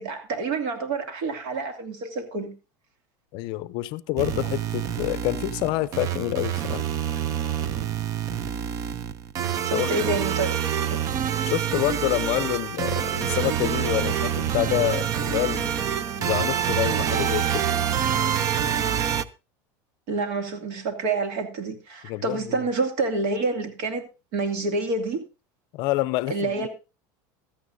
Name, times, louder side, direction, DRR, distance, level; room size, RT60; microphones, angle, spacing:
voice 1, 0.0-2.5 9.6-10.5 10.9-11.0 20.1-24.0 24.3-25.2 26.3-26.7, right 3 dB, 60° right, 2.5 m, -28 dB
voice 2, 3.3-6.8 9.7-10.0 11.4-15.7 16.2-17.7 22.0-22.6 25.7-26.7, left 18 dB, 50° left, 0.5 m, -27 dB
sound 1, 4.2-19.2, right 9 dB, 35° right, 0.6 m, -26 dB
16.0 x 13.0 x 2.7 m
supercardioid pair, 160°, 10 cm